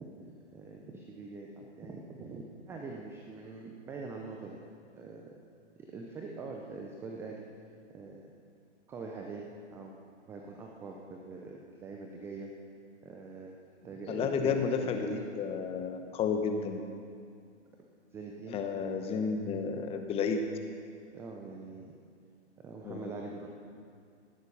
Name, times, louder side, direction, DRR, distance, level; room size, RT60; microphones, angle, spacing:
voice 1, 0.0-4.6 4.9-5.4 5.8-7.5 7.9-8.3 8.9-9.9 10.2-12.5 13.0-13.6 13.8-15.2 18.1-18.6 21.1-21.9 22.6-23.5, right 3 dB, 5° right, 1 dB, 0.5 m, -44 dB
voice 2, 14.1-16.8 18.5-20.4 22.8-23.1, left 5 dB, 15° left, 6 dB, 0.9 m, -31 dB
17.5 x 8.1 x 5.5 m, 2.3 s
hypercardioid pair, 130°, 36 cm